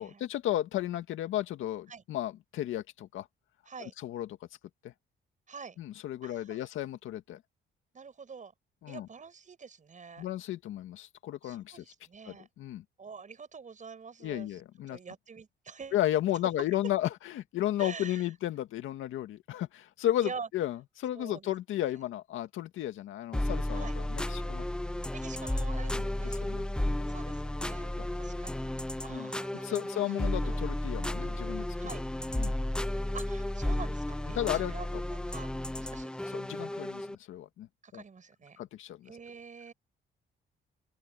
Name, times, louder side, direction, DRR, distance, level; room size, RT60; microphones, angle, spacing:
voice 1, 0.0-3.3 3.8-4.3 4.8-4.9 5.8-7.4 8.8-9.1 10.2-11.8 12.3-12.8 14.2-15.0 15.9-24.7 25.9-26.7 27.0-27.1 28.0-28.1 29.1-29.3 29.6-31.7 32.4-32.5 34.3-34.7 36.3-38.0 38.6-39.1, left 13 dB, 85° left, 2.1 m, -34 dB
voice 2, 5.5-5.8 6.2-6.6 7.9-8.5 8.9-10.3 11.4-12.5 13.0-14.6 14.9-16.0 17.8-18.2 20.2-20.5 21.1-21.5 23.7-23.9 25.1-26.4 27.1-27.9 28.2-30.6 31.8-32.0 33.1-36.2 37.8-38.6 39.0-39.7, right 5 dB, 40° right, 6.8 m, -46 dB
sound 1, 23.3-37.2, left 1 dB, 5° left, 0.4 m, -33 dB
open air
cardioid pair, 90°, 20 cm